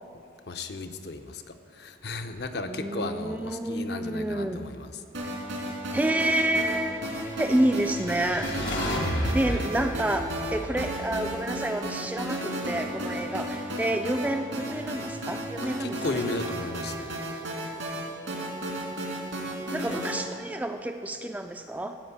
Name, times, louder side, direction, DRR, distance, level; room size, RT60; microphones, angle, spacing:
voice 1, 0.5-5.4 5.9-6.0 9.5-9.6 15.6-17.2, left 3 dB, 60° left, 7 dB, 0.7 m, -35 dB
voice 2, 2.7-4.6 5.9-8.5 9.3-16.2 19.7-22.0, right 1 dB, 10° right, 6 dB, 0.3 m, -29 dB
sound 1, 5.1-20.1, right 1 dB, 80° right, 2.4 m, -34 dB
sound 2, 7.6-11.9, left 1 dB, 75° left, 1.6 m, -33 dB
15.0 x 5.1 x 8.2 m, 2.3 s
head